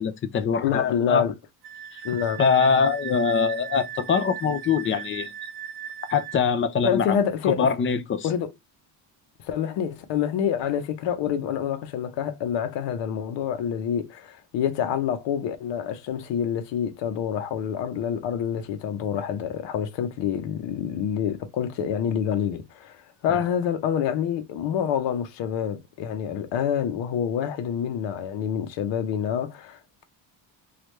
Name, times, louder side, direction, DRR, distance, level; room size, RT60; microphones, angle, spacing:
voice 1, 0.0-1.3 1.9-2.0 2.4-5.3 6.1-7.2 7.4-8.3 23.3-23.4, left 6 dB, 30° left, 0.4 m, -23 dB
voice 2, 0.6-1.3 2.0-2.4 6.8-7.7 8.2-8.5 9.4-30.0, left 8 dB, 90° left, 0.8 m, -27 dB
Wind instrument woodwind instrument, 1.6-6.4, right 8 dB, 70° right, 0.6 m, -38 dB
3.2 x 2.4 x 3.1 m
cardioid pair, 145°, 42 cm